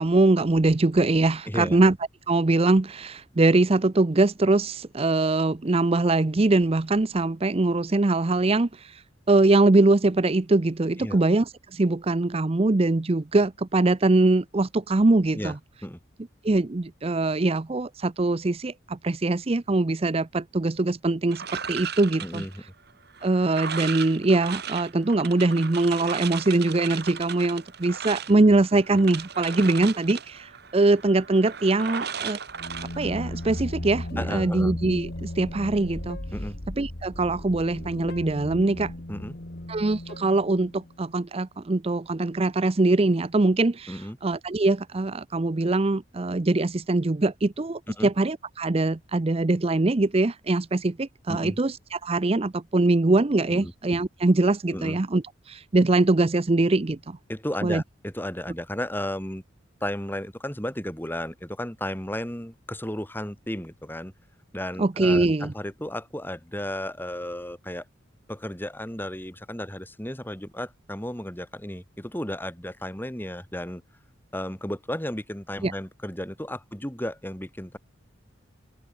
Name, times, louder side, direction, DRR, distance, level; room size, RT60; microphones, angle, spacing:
voice 1, 0.0-1.9 2.3-15.6 16.4-22.4 23.2-32.4 32.9-36.2 36.8-38.9 39.7-57.2 57.6-57.8 64.8-65.5 75.6-75.7, right 2 dB, 30° right, 0.6 m, -22 dB
voice 2, 1.5-1.8 11.0-11.2 15.3-15.5 15.8-16.0 22.2-22.6 34.2-34.8 36.3-36.6 39.1-39.4 43.9-44.2 48.0-48.1 51.3-51.6 53.5-53.7 54.7-55.0 57.3-59.4 59.8-64.1 64.5-67.9 68.3-73.8 74.3-77.8, left 1 dB, 10° left, 3.7 m, -34 dB
sound 1, 21.3-33.6, right 7 dB, 55° right, 4.5 m, -36 dB
sound 2, 32.5-41.1, left 1 dB, 50° left, 2.2 m, -36 dB
open air
head